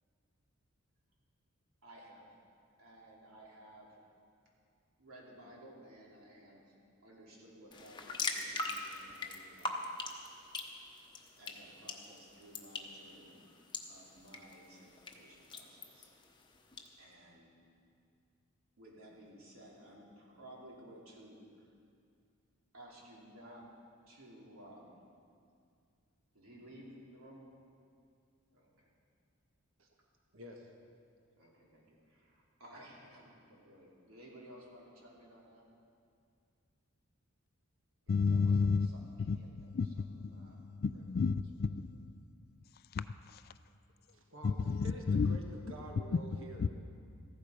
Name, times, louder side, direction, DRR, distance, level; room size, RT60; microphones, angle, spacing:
voice 1, 1.8-2.4 2.8-4.0 5.0-6.7 7.0-9.9 11.4-13.4 13.9-16.1 17.0-17.5 18.8-21.7 22.7-23.7 24.1-25.0 26.3-27.4 28.5-28.9 31.4-35.6 38.1-40.6 40.9-41.0, right 1 dB, 90° right, 2.9 m, -56 dB
sound 1, 7.7-16.9, left 3 dB, 20° left, 0.9 m, -43 dB
voice 2, 30.3-30.7 44.1-44.6 44.8-46.6, right 1 dB, 70° right, 1.4 m, -49 dB
voice 3, 38.1-38.9 39.2-42.1 42.9-43.0 43.3-43.4 44.4-45.4 46.1-46.7, left 4 dB, 45° left, 0.3 m, -32 dB
14.5 x 12.0 x 5.1 m
head